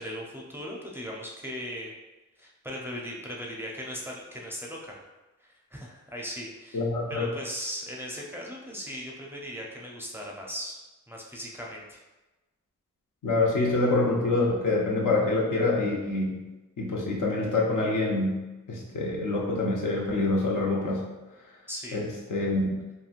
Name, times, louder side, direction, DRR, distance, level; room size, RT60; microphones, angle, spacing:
voice 1, 0.0-1.9 2.4-5.1 5.4-10.8 11.1-12.0 21.7-22.0, equal, 5° right, -3 dB, 0.5 m, -38 dB
voice 2, 6.7-7.3 13.2-16.4 16.8-18.4 18.7-21.0 21.9-22.0 22.3-22.7, left 2 dB, 80° left, -2 dB, 0.7 m, -26 dB
3.0 x 2.7 x 2.4 m, 1.1 s
wide cardioid pair, 75°, 31 cm